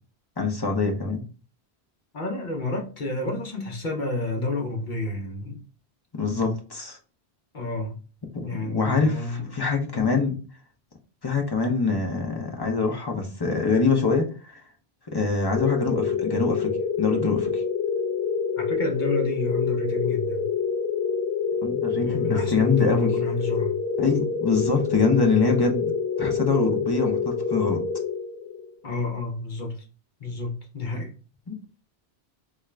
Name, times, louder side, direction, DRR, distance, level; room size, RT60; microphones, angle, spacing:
voice 1, 0.4-1.2 6.1-7.0 8.3-10.4 11.2-14.6 15.1-16.7 17.0-17.6 21.6-23.1 24.0-25.8 26.2-27.8 31.5-31.6, left 4 dB, 30° left, 0.5 m, -24 dB
voice 2, 2.1-5.6 7.5-8.0 8.4-9.5 18.6-20.5 22.0-23.8 28.8-29.8 30.2-31.1, left 2 dB, 50° left, 0.8 m, -30 dB
sound 1, 15.6-28.7, left 6 dB, 80° left, 1.0 m, -27 dB
3.5 x 2.4 x 3.2 m
omnidirectional pair, 1.1 m